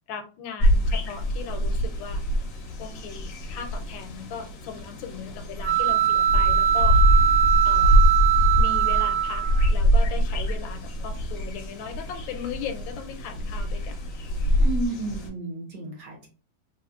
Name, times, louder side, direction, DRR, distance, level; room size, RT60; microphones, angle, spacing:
voice 1, 0.1-2.2 2.8-7.2 7.6-8.0 8.6-14.0, left 6 dB, 80° left, 7 dB, 1.3 m, -38 dB
sound 1, 0.6-15.3, equal, 60° left, 0.9 m, -24 dB
sound 2, 5.6-9.7, right 11 dB, 80° right, 1.3 m, -21 dB
voice 2, 14.6-16.3, right 2 dB, 65° right, -1 dB, 1.6 m, -32 dB
3.5 x 2.9 x 2.3 m, 0.36 s
omnidirectional pair, 2.1 m